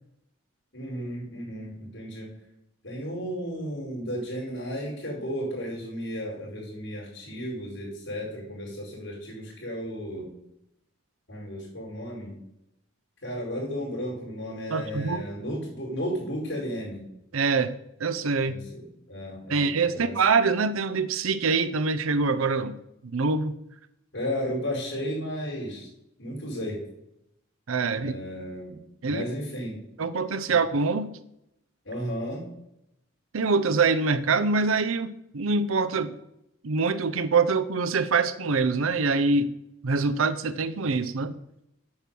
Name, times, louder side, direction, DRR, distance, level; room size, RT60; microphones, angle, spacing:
voice 1, 0.7-2.3 2.8-10.3 11.3-12.3 13.2-17.0 18.4-20.2 24.1-25.9 26.2-26.8 28.0-28.8 29.1-29.8 30.5-30.6 31.8-32.5, equal, 65° left, -5 dB, 4.8 m, -34 dB
voice 2, 14.7-15.2 17.3-17.7 18.0-18.6 19.5-22.8 23.1-23.6 27.7-28.1 29.0-29.2 30.0-31.1 33.3-36.2 36.6-39.5 39.8-41.3, right 4 dB, 85° right, 13 dB, 0.7 m, -24 dB
8.7 x 6.1 x 7.7 m, 0.82 s
head